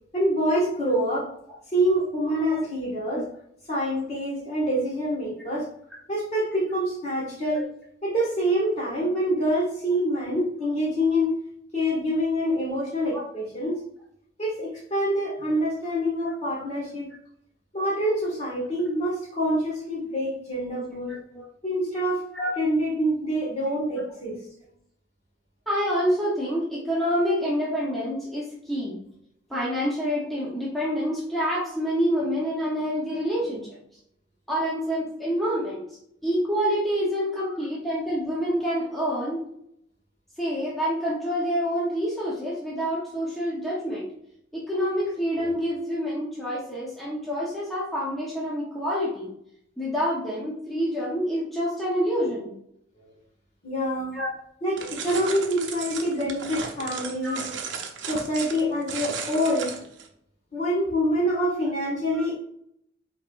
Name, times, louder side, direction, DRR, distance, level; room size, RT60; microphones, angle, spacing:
voice 1, 0.1-1.3 1.7-3.3 3.7-5.7 6.1-7.6 8.0-11.3 11.7-13.8 14.4-17.1 17.7-21.1 21.6-22.2 22.6-24.3 53.6-54.1 54.6-57.4 58.1-59.7 60.5-62.4, equal, 35° left, -4 dB, 1.7 m, -26 dB
voice 2, 21.1-21.4 22.3-22.5 25.7-29.0 29.5-33.7 34.5-35.8 36.2-39.4 40.4-44.1 44.5-49.3 49.8-52.5 54.1-54.3 57.2-57.6 62.1-62.2, equal, ahead, -7 dB, 0.8 m, -27 dB
sound 1, 54.8-60.1, right 6 dB, 65° right, 0.7 m, -35 dB
4.3 x 3.9 x 2.5 m, 0.73 s
head